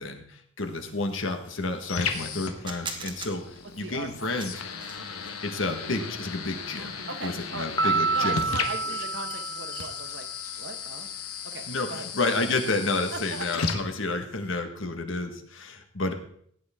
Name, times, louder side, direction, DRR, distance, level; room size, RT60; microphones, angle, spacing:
voice 1, 0.0-3.4 3.8-4.5 5.4-8.4 8.8-8.9 11.7-16.1, left 2 dB, 60° left, 6 dB, 1.5 m, -30 dB
sound 1, 0.6-14.6, left 5 dB, 85° left, 1.4 m, -36 dB
sound 2, 2.7-9.9, right 4 dB, 20° right, 1.2 m, -45 dB
voice 2, 3.8-4.3 7.1-10.3 10.5-12.1 13.1-13.5, right 3 dB, 55° right, 6 dB, 1.3 m, -39 dB
Piano, 7.8-10.3, right 4 dB, 20° left, 1.2 m, -28 dB
16.5 x 9.3 x 3.7 m, 0.64 s
head